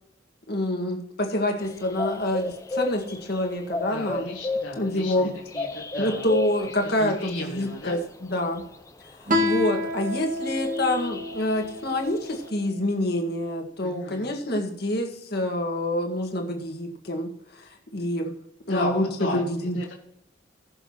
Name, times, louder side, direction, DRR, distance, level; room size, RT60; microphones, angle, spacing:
voice 1, 0.5-4.4 4.8-5.3 6.0-8.6 9.2-18.3 18.7-19.9, left 1 dB, 55° left, 2 dB, 1.9 m, -27 dB
sound 1, 1.6-9.8 10.4-12.5, left 3 dB, 15° left, 0.7 m, -34 dB
voice 2, 3.9-6.3 7.0-8.0 13.8-14.4 17.6-17.7 18.7-19.4 19.8-19.9, left 2 dB, 75° left, -3 dB, 2.0 m, -35 dB
Guitar, 9.3-12.5, left 2 dB, 45° right, 1.7 m, -28 dB
20.0 x 6.9 x 3.0 m, 0.80 s
head